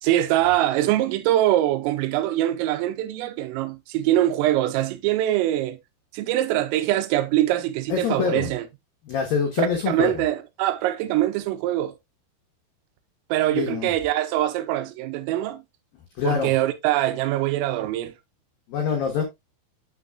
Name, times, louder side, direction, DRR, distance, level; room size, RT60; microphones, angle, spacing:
voice 1, 0.0-5.8 6.1-8.7 9.9-11.9 13.3-15.6 16.2-18.1, right 14 dB, 85° right, 3.3 m, -23 dB
voice 2, 7.9-8.5 9.1-10.2 13.5-13.9 16.2-16.5 18.7-19.2, left 6 dB, 90° left, 2.0 m, -25 dB
9.0 x 6.5 x 2.3 m
omnidirectional pair, 6.0 m